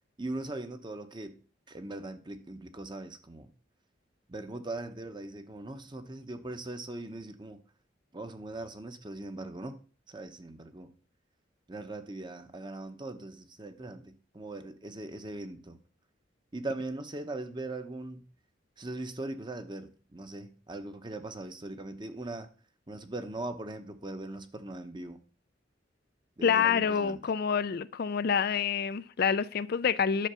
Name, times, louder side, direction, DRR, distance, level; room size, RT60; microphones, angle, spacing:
voice 1, 0.2-1.4 1.7-3.5 4.3-7.6 8.1-9.7 10.1-10.9 11.7-15.8 16.5-18.2 18.8-22.5 22.9-25.2 26.4-27.2, right 2 dB, 25° right, 0.9 m, -40 dB
voice 2, 26.4-30.3, left 7 dB, 55° left, 0.4 m, -27 dB
11.0 x 4.6 x 6.8 m
head